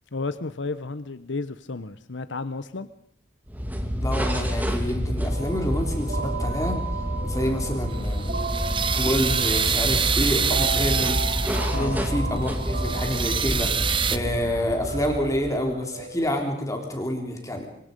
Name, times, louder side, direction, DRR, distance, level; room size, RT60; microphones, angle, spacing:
voice 1, 0.1-2.9 7.4-7.6 11.7-12.0, left 3 dB, 80° left, 12 dB, 1.0 m, -32 dB
sound 1, 3.5-15.7, equal, 10° right, 2.7 m, -28 dB
voice 2, 4.0-6.8 7.2-8.4 8.9-11.2 11.7-17.7, left 1 dB, 15° left, 3 dB, 3.5 m, -28 dB
sound 2, 5.3-16.3, right 3 dB, 50° right, 4.3 m, -35 dB
sound 3, 7.9-11.9 12.4-14.2, right 7 dB, 25° right, 1.0 m, -26 dB
26.5 x 23.0 x 5.4 m, 0.67 s
head